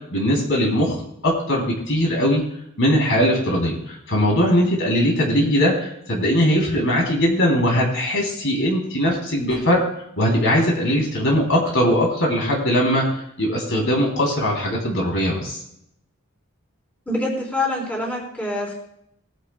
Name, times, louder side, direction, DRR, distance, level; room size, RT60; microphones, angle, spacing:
voice 1, 0.1-1.0 1.2-2.4 2.8-9.8 10.2-15.6, equal, 60° left, -1 dB, 3.3 m, -20 dB
voice 2, 17.1-18.7, left 2 dB, 5° left, -3 dB, 4.0 m, -25 dB
20.5 x 11.0 x 2.3 m, 0.74 s
head